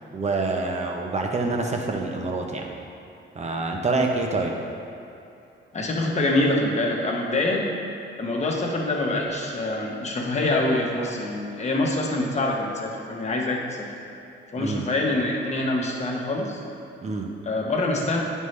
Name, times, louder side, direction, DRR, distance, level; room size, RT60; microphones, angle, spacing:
voice 1, 0.1-2.7 3.3-4.5 14.6-14.9 17.0-17.3, right 3 dB, 35° right, 2 dB, 0.9 m, -26 dB
voice 2, 5.7-7.7 8.2-13.9 14.5-16.6 17.4-18.2, left 2 dB, 35° left, -1 dB, 1.2 m, -25 dB
9.6 x 5.4 x 3.3 m, 2.8 s
cardioid pair, 115°, 20 cm